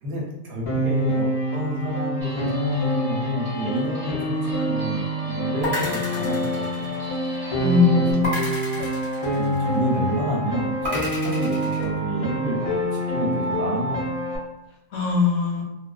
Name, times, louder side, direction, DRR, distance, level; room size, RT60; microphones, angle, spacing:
voice 1, 0.0-6.9 8.1-8.6 9.3-12.7 13.1-14.0, equal, 70° right, -2 dB, 0.9 m, -30 dB
Piano, 0.7-14.4, right 1 dB, 50° left, 0.4 m, -26 dB
Guitar, 2.2-8.1, left 4 dB, 45° right, 0.5 m, -37 dB
sound 1, 5.6-7.4 8.2-9.9 10.8-11.8, left 1 dB, 20° right, 0.9 m, -31 dB
voice 2, 7.6-8.8 14.9-15.6, left 5 dB, 75° left, 0 dB, 0.9 m, -21 dB
2.4 x 2.2 x 2.3 m, 0.88 s
omnidirectional pair, 1.2 m